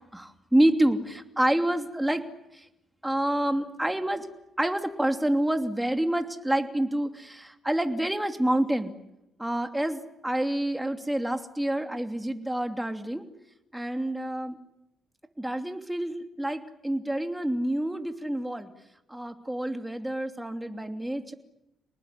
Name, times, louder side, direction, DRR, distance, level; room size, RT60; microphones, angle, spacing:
voice 1, 0.1-2.2 2.5-2.6 3.0-4.3 4.6-8.9 9.4-13.2 13.7-14.6 15.4-18.7 19.1-21.3, right 1 dB, 5° right, 6 dB, 2.9 m, -28 dB
29.0 x 19.5 x 9.8 m, 0.90 s
cardioid pair, 90°, 0 cm